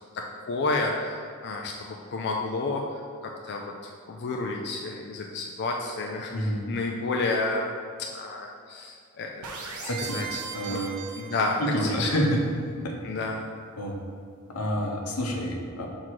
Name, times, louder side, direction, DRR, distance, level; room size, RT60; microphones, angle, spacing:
voice 1, 0.5-2.8 3.4-7.7 8.1-9.4 9.8-10.4 10.7-10.8 11.2-12.1 13.0-13.5, left 3 dB, 50° left, 1 dB, 0.4 m, -30 dB
voice 2, 6.3-6.6 9.9-10.2 10.5-11.0 11.6-12.9 13.8-14.0 14.5-15.9, equal, 85° left, 0 dB, 0.9 m, -28 dB
sound 1, 9.4-11.9, right 5 dB, 80° right, 0.8 m, -38 dB
6.0 x 3.7 x 4.6 m, 2.2 s
head